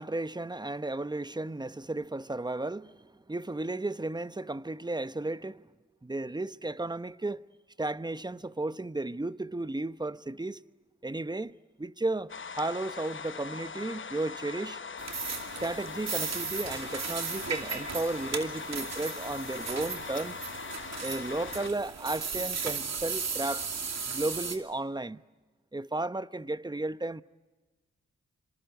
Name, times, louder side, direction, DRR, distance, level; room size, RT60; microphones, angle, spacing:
voice 1, 0.0-5.7 6.0-7.4 7.8-10.6 11.0-11.5 11.8-14.8 15.6-20.3 21.0-23.7 24.1-25.2 25.7-27.2, right 2 dB, 15° right, 0.9 m, -34 dB
sound 1, 12.3-21.7, left 5 dB, 40° left, 0.9 m, -41 dB
sound 2, 15.0-24.6, right 5 dB, 60° right, 2.7 m, -36 dB
26.0 x 26.0 x 8.2 m
supercardioid pair, 45°, 30 cm